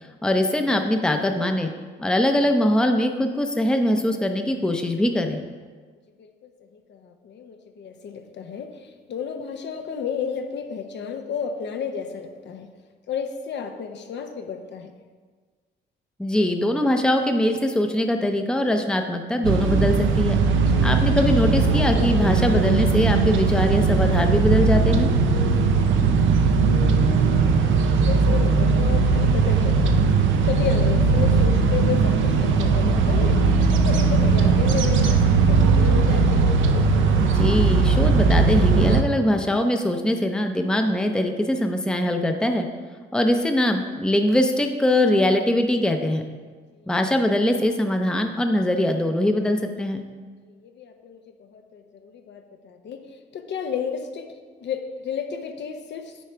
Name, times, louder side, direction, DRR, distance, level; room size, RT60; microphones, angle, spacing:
voice 1, 0.2-1.7 2.0-5.4 16.2-20.4 20.8-25.1 37.2-42.7 43.1-46.2 46.9-50.0, left 1 dB, 5° left, 5 dB, 0.6 m, -22 dB
voice 2, 6.9-12.7 13.1-14.9 20.7-21.1 25.8-26.1 26.5-30.0 30.4-33.4 33.7-36.6 46.8-46.9 50.4-51.2 51.5-54.3 54.6-56.2, left 6 dB, 65° left, 5 dB, 0.8 m, -32 dB
sound 1, 19.4-39.0, right 4 dB, 75° right, 0.7 m, -19 dB
8.3 x 4.8 x 4.4 m, 1.5 s
cardioid pair, 90°, 20 cm